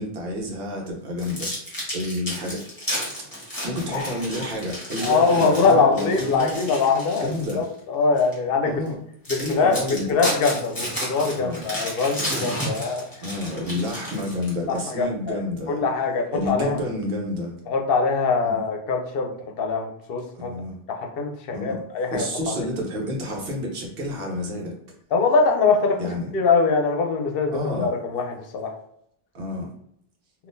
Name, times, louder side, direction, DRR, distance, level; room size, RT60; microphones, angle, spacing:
voice 1, 0.0-1.6 1.9-2.6 3.4-6.6 7.2-7.6 8.6-9.0 9.4-10.2 11.3-11.7 13.2-15.8 16.3-17.5 18.4-18.6 20.3-20.8 21.5-21.7 22.1-24.7 26.0-26.3 27.5-27.9 29.3-29.7, left 1 dB, 70° right, -1 dB, 1.0 m, -29 dB
sound 1, 1.2-7.6 8.2-8.3 8.9-9.0 9.2-14.8, equal, 20° left, 1.2 m, -32 dB
voice 2, 5.0-8.8 9.3-13.0 14.7-15.4 15.7-16.8 17.7-19.3 19.6-20.5 20.9-22.5 25.1-26.0 26.3-28.7, left 4 dB, 65° left, 3 dB, 0.8 m, -23 dB
3.6 x 2.5 x 2.5 m, 0.72 s
omnidirectional pair, 1.0 m